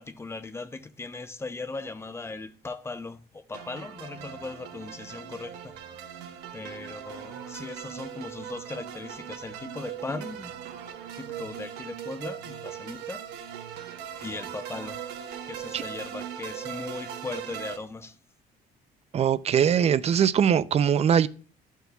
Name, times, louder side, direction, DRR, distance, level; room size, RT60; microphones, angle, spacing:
voice 1, 0.0-5.7 6.5-10.5 11.2-13.2 14.1-15.0 15.5-18.2, left 3 dB, 15° left, 0.6 m, -38 dB
sound 1, 3.5-17.8, right 9 dB, 90° right, 1.2 m, -39 dB
voice 2, 19.1-21.3, right 8 dB, 40° right, 0.4 m, -21 dB
12.5 x 4.5 x 2.3 m
cardioid pair, 110°, 17 cm